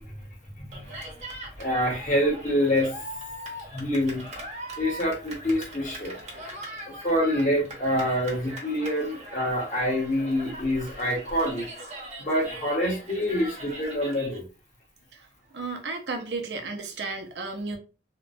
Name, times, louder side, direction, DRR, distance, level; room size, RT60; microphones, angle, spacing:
Cheering, 0.7-14.4, right 1 dB, 40° right, 0.8 m, -41 dB
voice 1, 1.6-2.9 3.7-4.2 4.8-6.2 6.9-11.6 12.2-14.4, equal, 45° left, 1.1 m, -26 dB
voice 2, 15.5-17.8, right 3 dB, 75° right, 0.6 m, -33 dB
2.9 x 2.2 x 2.6 m
head